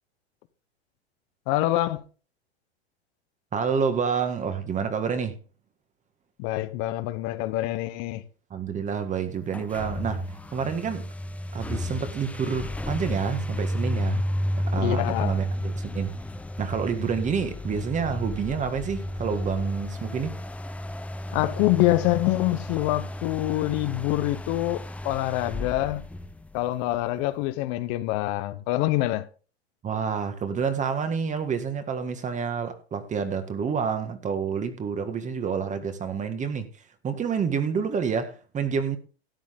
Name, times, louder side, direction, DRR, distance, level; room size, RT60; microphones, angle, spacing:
voice 1, 1.5-2.0 6.4-8.2 14.7-15.4 21.3-26.0 26.5-29.2, left 16 dB, 45° left, 1.1 m, -25 dB
voice 2, 3.5-5.4 8.5-10.2 10.5-11.1 11.5-14.3 14.5-16.1 16.6-20.4 29.8-36.7 37.0-39.0, right 6 dB, 20° right, 1.8 m, -28 dB
sound 1, 9.5-27.0, left 1 dB, 5° left, 0.5 m, -32 dB
13.0 x 9.5 x 3.7 m
hypercardioid pair, 110°, 32 cm